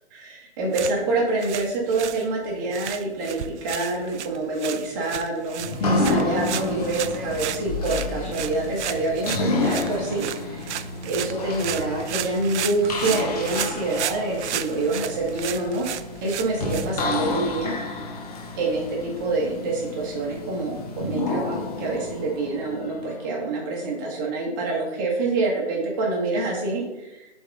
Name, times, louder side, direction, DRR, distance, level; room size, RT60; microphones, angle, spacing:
voice 1, 0.1-10.8 11.0-15.9 16.2-18.0 18.6-27.3, right 2 dB, 20° right, -2 dB, 1.1 m, -26 dB
sound 1, 0.6-17.4, right 10 dB, 85° right, 0.5 m, -34 dB
sound 2, 5.6-23.4, left 3 dB, 35° left, 0.7 m, -30 dB
6.7 x 3.6 x 3.9 m, 1.0 s
hypercardioid pair, 170°, 34 cm